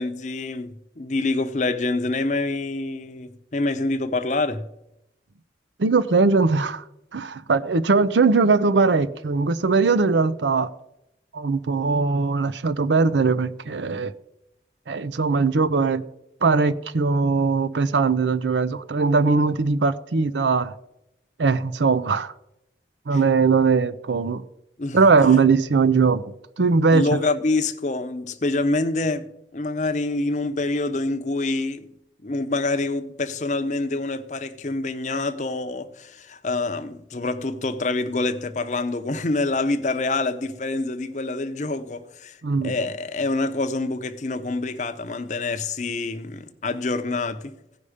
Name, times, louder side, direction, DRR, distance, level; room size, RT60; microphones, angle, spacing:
voice 1, 0.0-4.7 23.1-23.2 24.8-25.0 26.9-29.3 29.5-31.9 32.2-47.6, left 2 dB, 40° left, 0.7 m, -26 dB
voice 2, 5.8-6.8 7.1-10.7 11.3-14.1 14.9-16.0 16.4-20.7 21.4-22.3 23.1-24.4 24.9-27.0 42.4-42.7, right 4 dB, 85° right, 0.6 m, -20 dB
16.0 x 5.4 x 5.0 m
head